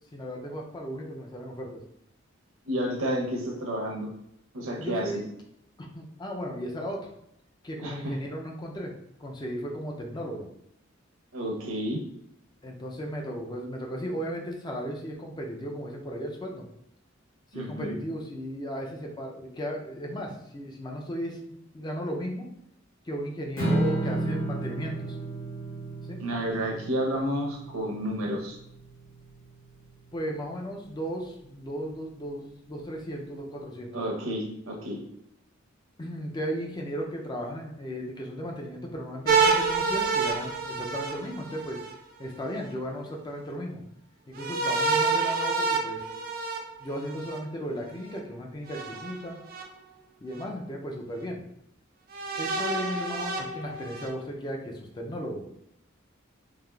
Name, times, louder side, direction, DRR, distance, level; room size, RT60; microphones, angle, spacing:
voice 1, 0.1-1.8 4.8-5.3 5.8-7.1 7.6-8.9 9.2-10.5 12.6-16.7 17.5-22.5 23.0-25.2 26.0-26.2 30.1-34.0 36.0-41.8 42.2-43.8 44.3-46.1 46.8-49.4 50.2-51.4 52.4-55.4, equal, 20° left, 1 dB, 0.4 m, -35 dB
voice 2, 2.7-4.1 4.5-5.1 7.8-8.1 11.3-12.0 17.5-18.0 26.2-28.6 33.9-35.0, equal, 85° right, 0 dB, 0.7 m, -30 dB
Strum, 23.6-29.8, right 1 dB, 70° left, 1.1 m, -33 dB
sound 1, 39.3-41.9 44.4-47.4 48.7-49.6 50.4-50.5 52.1-54.1, right 4 dB, 45° right, 0.4 m, -28 dB
3.4 x 2.4 x 2.3 m, 0.76 s
head